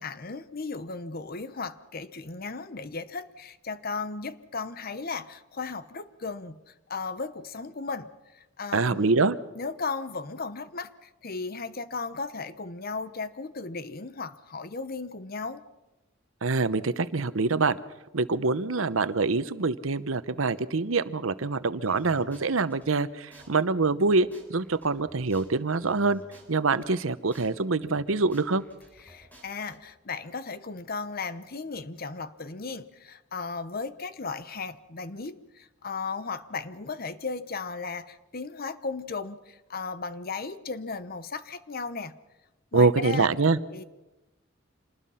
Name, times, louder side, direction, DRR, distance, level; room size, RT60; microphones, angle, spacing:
voice 1, 0.0-9.1 9.5-15.6 29.1-42.1 42.7-43.3 43.7-43.8, left 4 dB, 50° left, 13 dB, 1.0 m, -36 dB
voice 2, 8.7-9.4 16.4-17.8 18.1-26.2 26.5-28.6 42.7-43.6, right 3 dB, 90° right, 14 dB, 0.9 m, -25 dB
sound 1, 21.8-22.9 23.3-23.5 23.8-26.9 27.3-27.5 27.8-29.8, equal, 10° left, 4.1 m, -53 dB
26.0 x 20.0 x 5.7 m, 1.0 s
head